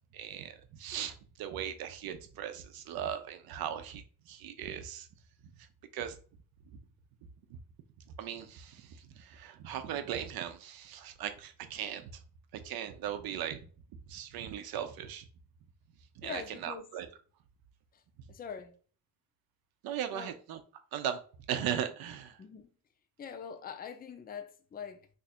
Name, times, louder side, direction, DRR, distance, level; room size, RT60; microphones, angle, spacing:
voice 1, 0.1-5.1 5.6-5.7 5.9-6.2 6.7-6.8 7.5-7.6 8.2-12.1 12.5-13.6 14.1-15.3 16.2-17.1 19.8-20.6 20.9-21.2 21.5-22.4, right 9 dB, 80° right, 0.7 m, -38 dB
voice 2, 16.2-16.9 17.9-18.0 18.3-18.8 20.1-20.3 22.4-22.7 23.2-25.1, left 7 dB, 25° left, 0.5 m, -43 dB
2.7 x 2.5 x 4.2 m
cardioid pair, 95°, 36 cm